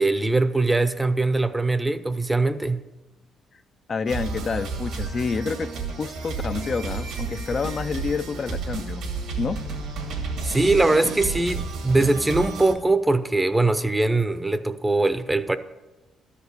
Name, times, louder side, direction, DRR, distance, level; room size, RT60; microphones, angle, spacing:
voice 1, 0.0-2.8 10.4-15.6, right 2 dB, 10° right, 0.5 m, -21 dB
voice 2, 3.9-5.7 6.0-9.1 9.4-9.6, left 5 dB, 45° left, 0.3 m, -28 dB
sound 1, 4.1-12.7, right 4 dB, 90° right, 2.0 m, -31 dB
12.5 x 5.0 x 6.6 m
cardioid pair, 90°, 0 cm